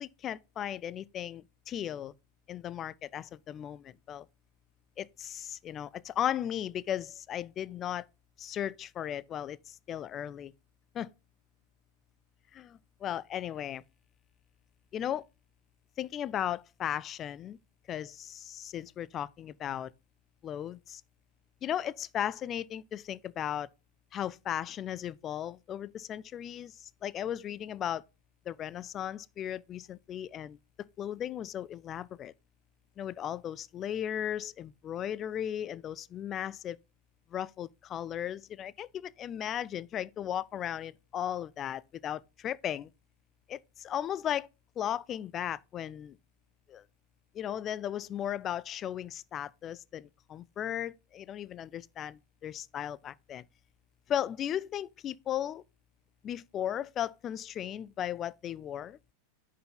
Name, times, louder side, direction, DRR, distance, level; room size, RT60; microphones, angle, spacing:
voice 1, 0.0-2.1 2.5-4.3 5.0-8.0 8.4-10.5 10.9-11.1 12.5-13.8 14.9-15.3 16.0-17.6 17.9-19.9 20.4-21.0 21.6-23.7 24.1-28.0 28.5-32.3 33.0-36.8 37.3-42.9 43.5-44.5 44.8-46.2 46.7-46.8 47.3-53.4 54.1-55.6 56.2-59.0, left 10 dB, 30° left, 0.3 m, -36 dB
10.0 x 4.7 x 3.8 m
figure-of-eight pair, 90°, 0 cm